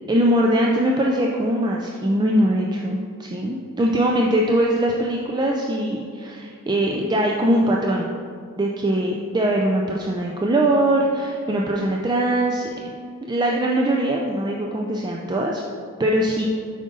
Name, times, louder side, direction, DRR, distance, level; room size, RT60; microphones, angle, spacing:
voice 1, 0.1-8.1 8.6-12.9 13.3-15.6 16.0-16.5, right 1 dB, 20° right, -1 dB, 0.4 m, -21 dB
7.7 x 5.1 x 3.8 m, 2.3 s
head